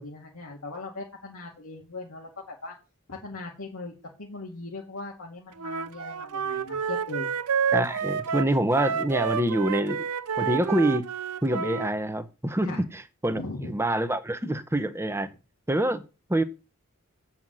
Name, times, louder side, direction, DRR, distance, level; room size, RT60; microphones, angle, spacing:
voice 1, 0.0-2.7 3.1-3.9 4.2-7.3 12.6-12.8 13.3-13.7, left 3 dB, 80° left, 2.1 m, -39 dB
Wind instrument woodwind instrument, 5.6-11.9, right 6 dB, 85° right, 0.6 m, -29 dB
voice 2, 7.7-10.1 10.4-11.1 11.4-15.3 15.7-16.0 16.3-16.4, right 1 dB, 10° right, 0.9 m, -26 dB
7.7 x 5.7 x 7.7 m
head